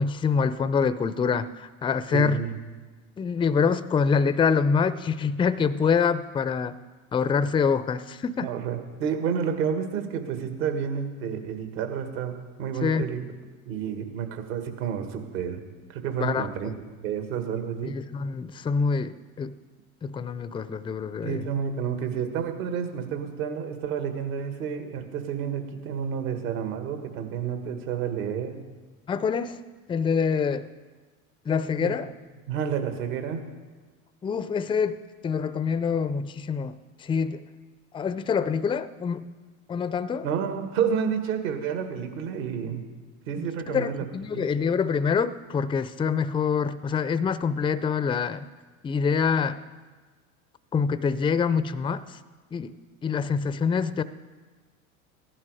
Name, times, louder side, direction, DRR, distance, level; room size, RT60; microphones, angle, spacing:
voice 1, 0.0-2.4 3.2-6.7 7.1-8.5 12.8-13.0 16.2-16.7 17.8-19.5 20.0-21.5 29.1-29.6 29.9-30.7 31.5-32.1 34.2-36.7 37.0-37.4 37.9-39.3 39.7-40.3 43.4-48.4 48.8-49.6 50.7-52.2 52.5-52.7 53.0-54.0, left 6 dB, 10° left, 15 dB, 0.4 m, -25 dB
voice 2, 2.1-2.5 8.4-13.2 13.7-15.6 15.9-16.7 17.0-17.9 21.2-28.6 31.8-31.9 32.5-33.4 40.2-42.8 43.3-44.1 44.3-44.5, right 7 dB, 70° right, 6 dB, 1.9 m, -30 dB
15.5 x 11.0 x 4.8 m, 1.4 s
hypercardioid pair, 85°, 43 cm